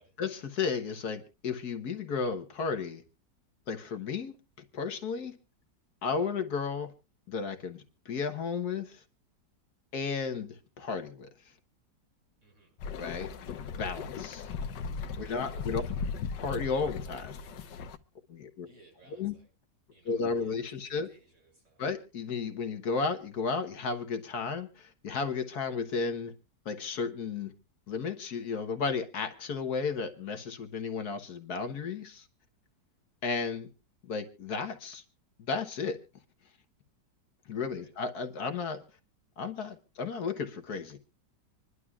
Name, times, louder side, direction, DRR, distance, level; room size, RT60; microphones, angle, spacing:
voice 1, 0.2-3.0 3.7-4.3 4.7-5.3 6.0-6.9 7.3-9.0 9.9-11.3 13.0-13.3 13.8-14.5 15.2-15.8 16.4-17.4 18.3-18.7 19.2-19.3 20.1-21.1 21.8-26.3 26.6-27.5 27.9-32.3 33.2-33.7 34.1-35.0 35.4-36.0 37.5-38.8 39.4-41.0, left 5 dB, 65° left, 1.6 m, -33 dB
voice 2, 12.4-12.7 15.1-15.9 18.6-19.5 19.9-21.9 37.7-37.9, right 2 dB, 65° right, 8.8 m, -60 dB
sound 1, 12.8-18.0, left 5 dB, 85° left, 1.5 m, -37 dB
26.0 x 11.0 x 2.4 m
omnidirectional pair, 1.9 m